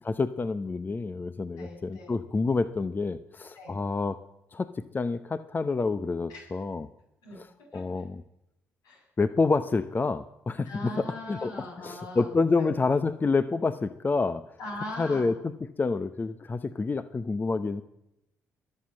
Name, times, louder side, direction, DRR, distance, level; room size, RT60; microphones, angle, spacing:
voice 1, 0.0-4.2 4.5-6.9 7.3-8.2 9.2-14.4 15.0-17.8, left 4 dB, 30° left, 13 dB, 0.8 m, -28 dB
voice 2, 1.6-2.1 3.6-3.8 6.3-6.5 7.2-7.4 7.7-8.0 8.8-9.0 10.6-12.3 12.6-12.7 14.6-15.3, left 1 dB, 75° left, -1 dB, 7.3 m, -40 dB
22.5 x 7.7 x 7.5 m, 0.85 s
hypercardioid pair, 50°, 6 cm